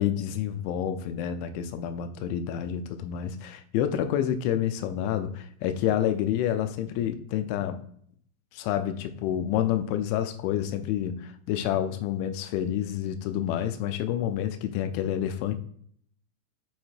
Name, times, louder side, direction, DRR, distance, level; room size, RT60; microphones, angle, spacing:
voice 1, 0.0-7.8 8.5-15.6, left 10 dB, 90° left, 9 dB, 3.0 m, -28 dB
8.2 x 2.8 x 4.4 m, 0.63 s
omnidirectional pair, 5.2 m